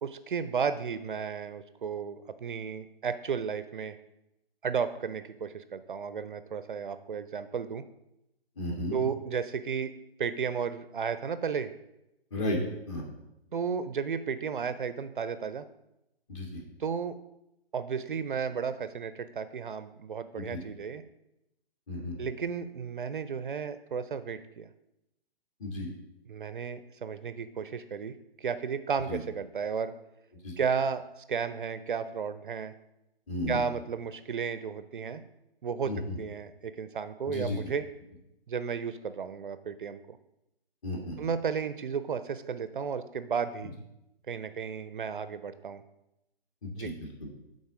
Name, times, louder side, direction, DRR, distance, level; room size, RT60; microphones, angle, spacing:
voice 1, 0.0-4.0 4.6-7.8 8.9-9.9 10.2-11.7 13.5-15.6 16.8-17.2 17.7-21.0 22.2-24.7 26.3-29.9 30.6-32.7 33.5-35.2 35.6-37.9 38.5-40.2 41.2-43.7 44.3-45.8 46.8-46.9, right 6 dB, 55° right, 12 dB, 0.5 m, -33 dB
voice 2, 8.6-9.0 12.3-12.6 12.9-13.0 16.3-16.6 20.3-20.6 21.9-22.2 25.6-25.9 29.1-29.2 30.4-30.6 33.3-33.6 35.8-36.2 37.2-37.6 40.8-41.3 46.6-47.3, left 1 dB, 30° left, 0 dB, 1.7 m, -34 dB
8.6 x 3.9 x 4.9 m, 0.87 s
figure-of-eight pair, 130°, 30 cm